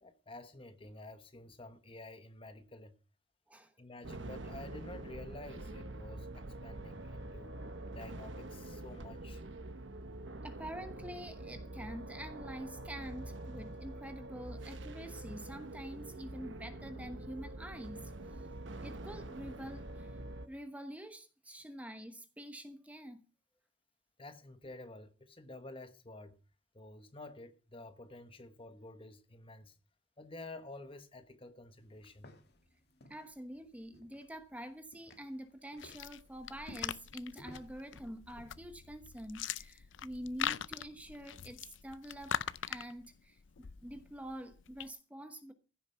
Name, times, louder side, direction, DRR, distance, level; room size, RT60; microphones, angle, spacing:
voice 1, 0.0-2.9 3.8-7.5 7.9-9.4 24.2-26.4 26.7-29.7 30.2-32.4, left 2 dB, 30° left, 1.3 m, -50 dB
sound 1, 4.0-20.5, right 2 dB, 80° right, 1.2 m, -45 dB
voice 2, 10.4-18.0 18.3-18.4 18.8-20.2 20.5-23.2 33.1-45.5, equal, 10° right, 1.1 m, -46 dB
sound 2, 31.8-38.5, left 1 dB, 55° left, 2.0 m, -59 dB
sound 3, 35.8-44.9, left 9 dB, 80° left, 0.5 m, -42 dB
15.5 x 8.1 x 5.7 m
head